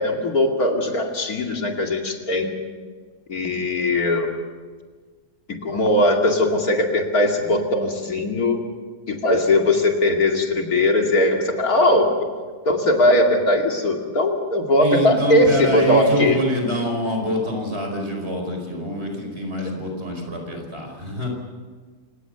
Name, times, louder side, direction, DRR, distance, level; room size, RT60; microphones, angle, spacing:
voice 1, 0.0-2.5 3.3-4.3 5.5-8.6 9.1-12.1 12.6-16.4 19.6-19.7, left 1 dB, 65° left, 2 dB, 2.9 m, -19 dB
voice 2, 14.8-21.3, equal, 40° right, 2 dB, 5.4 m, -25 dB
28.5 x 18.0 x 6.9 m, 1.5 s
omnidirectional pair, 1.7 m